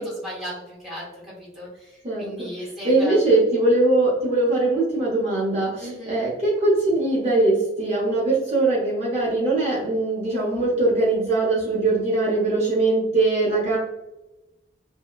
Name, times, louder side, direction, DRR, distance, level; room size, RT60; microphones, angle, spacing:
voice 1, 0.0-3.4 5.8-6.2, equal, ahead, -7 dB, 1.0 m, -36 dB
voice 2, 2.0-2.5 2.8-13.8, right 2 dB, 35° right, -6 dB, 0.7 m, -21 dB
2.7 x 2.1 x 2.2 m, 0.97 s
head